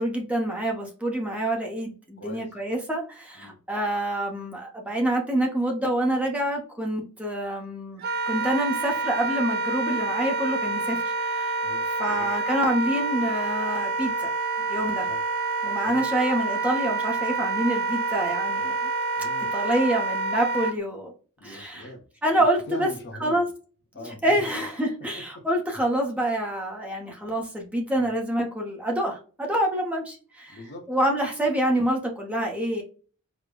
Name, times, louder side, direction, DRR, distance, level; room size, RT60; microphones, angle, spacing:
voice 1, 0.0-11.6 12.0-14.3 14.7-15.1 15.6-18.8 19.5-21.1 21.4-21.9 22.2-22.9 23.2-23.5 24.0-30.6 30.9-32.8, right 1 dB, 5° right, 0.7 m, -27 dB
voice 2, 2.2-2.5 3.4-3.6 11.6-12.3 15.0-15.2 15.8-16.0 19.2-19.5 21.4-22.0 22.4-23.5 23.9-24.4 25.2-25.5 28.0-28.1 30.5-30.9, left 1 dB, 50° left, 0.8 m, -42 dB
Wind instrument woodwind instrument, 8.0-20.8, right 3 dB, 45° right, 0.3 m, -27 dB
4.9 x 2.0 x 2.2 m
head